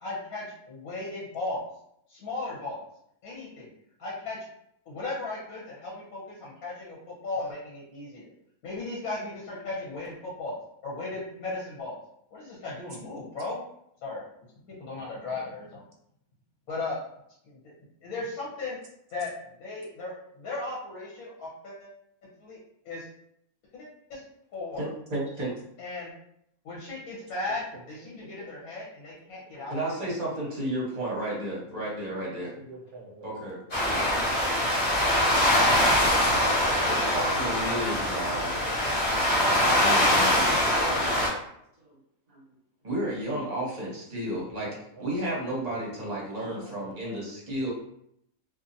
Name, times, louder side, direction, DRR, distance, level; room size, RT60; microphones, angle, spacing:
voice 1, 0.0-1.6 2.1-2.9 3.2-3.7 4.0-4.4 4.9-7.0 7.2-8.3 8.6-10.6 10.8-12.0 12.3-13.6 14.0-14.2 14.7-15.8 16.7-17.0 17.4-17.6 18.0-18.8 19.1-19.3 19.6-21.9 22.4-22.6 22.8-23.0 23.7-24.2 24.5-24.9 25.8-26.1 26.6-29.8, left 2 dB, 80° left, -6 dB, 1.3 m, -36 dB
voice 2, 24.8-25.5 29.7-32.5 33.2-33.6 36.0-38.6 39.8-40.5 42.8-44.7 45.0-47.7, right 1 dB, 35° right, -5 dB, 0.9 m, -32 dB
voice 3, 32.6-33.2 33.9-34.1 39.1-39.8 46.4-46.5 46.9-47.2, right 1 dB, 60° right, -1 dB, 0.6 m, -46 dB
sound 1, 33.7-41.3, left 1 dB, 35° left, 0.9 m, -23 dB
2.8 x 2.5 x 2.5 m, 0.74 s
omnidirectional pair, 1.5 m